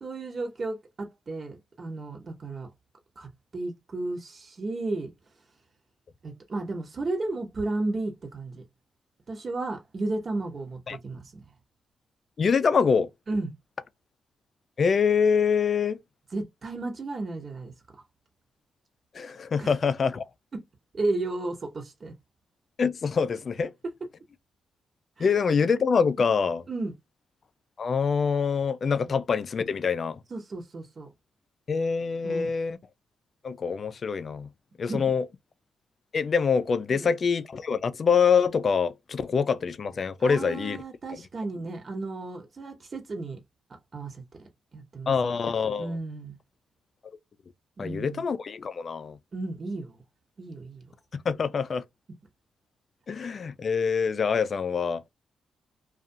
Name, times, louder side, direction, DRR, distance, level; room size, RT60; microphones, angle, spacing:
voice 1, 0.0-2.7 3.2-5.1 6.2-8.6 9.3-11.5 13.3-13.6 16.3-17.7 19.6-19.7 20.5-20.6 20.9-22.1 25.2-25.3 26.7-26.9 29.0-29.1 30.3-31.1 32.2-32.5 34.9-35.1 36.9-37.1 40.2-43.4 43.9-44.2 44.7-45.1 45.8-46.4 47.8-48.2 49.3-50.0 50.4-50.9, right 2 dB, 45° right, 0.9 m, -33 dB
voice 2, 12.4-13.1 14.8-16.0 19.1-20.2 22.8-23.7 25.2-26.6 27.8-30.2 31.7-32.8 33.4-34.5 34.8-35.3 36.1-40.8 45.1-45.9 47.8-49.2 51.1-51.8 53.1-55.0, left 6 dB, 55° left, 0.3 m, -25 dB
2.4 x 2.3 x 2.6 m
supercardioid pair, 60°, 0 cm